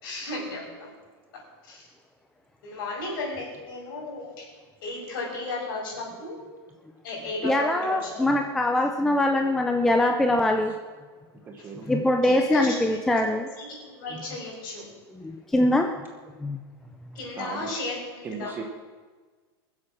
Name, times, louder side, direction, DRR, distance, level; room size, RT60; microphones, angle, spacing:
voice 1, 0.0-0.9 1.7-1.8 2.6-4.5 4.8-6.4 7.0-8.2 12.2-12.8 13.2-14.9 17.2-18.5, left 2 dB, 55° left, -2 dB, 5.6 m, -34 dB
voice 2, 7.4-10.7 11.9-13.5 15.1-15.9 16.4-16.6, left 1 dB, 5° left, 3 dB, 0.4 m, -23 dB
voice 3, 11.4-12.5 17.3-17.8 18.2-18.6, right 5 dB, 15° right, 3 dB, 0.9 m, -38 dB
21.5 x 7.7 x 6.1 m, 1.4 s
supercardioid pair, 175°, 13 cm